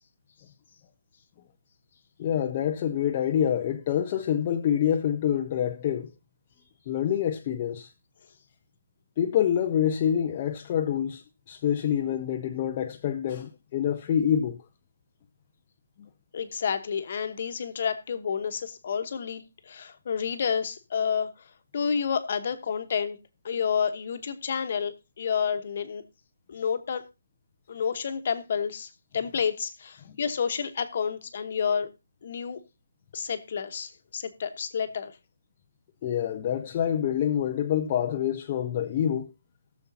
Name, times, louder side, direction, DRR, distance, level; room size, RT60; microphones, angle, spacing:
voice 1, 2.2-6.1 6.9-7.9 9.2-14.6 16.0-16.1 36.0-39.3, left 9 dB, 25° left, 0.5 m, -26 dB
voice 2, 16.3-21.3 21.7-23.2 23.4-26.0 26.5-27.0 27.7-31.9 32.2-32.6 33.1-35.1, left 6 dB, 40° left, 1.1 m, -30 dB
20.5 x 7.0 x 2.7 m
hypercardioid pair, 175°, 0 cm